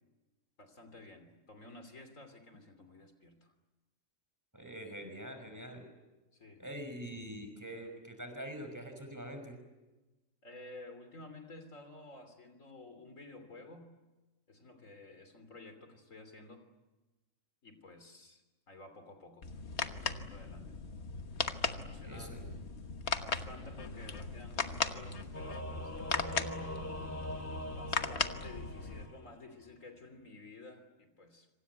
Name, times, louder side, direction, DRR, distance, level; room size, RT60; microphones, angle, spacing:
voice 1, 0.6-3.5 6.3-6.6 10.4-13.9 14.5-16.7 17.6-19.5 20.0-20.8 21.7-22.4 23.2-26.5 27.7-31.5, left 2 dB, 75° left, 8 dB, 3.6 m, -52 dB
voice 2, 4.5-5.9 6.6-9.5 22.0-22.5, equal, 15° right, 6 dB, 5.5 m, -44 dB
sound 1, 19.4-29.1, left 4 dB, 55° left, 1.6 m, -38 dB
Singing / Musical instrument, 25.3-29.4, left 1 dB, 10° left, 1.9 m, -42 dB
26.5 x 26.0 x 8.3 m, 1.1 s
omnidirectional pair, 1.4 m